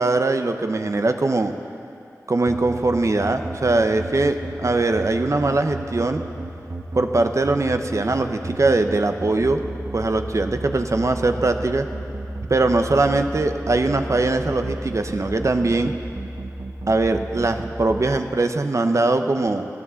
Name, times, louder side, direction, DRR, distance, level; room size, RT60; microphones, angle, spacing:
voice 1, 0.0-1.5 2.3-6.2 6.9-9.6 9.9-11.9 12.5-15.9 16.9-19.7, right 2 dB, 50° right, 7 dB, 0.8 m, -21 dB
sound 1, 2.5-18.0, right 2 dB, 70° right, 1.5 m, -32 dB
13.5 x 12.0 x 7.0 m, 2.6 s
wide cardioid pair, 60°, 6 cm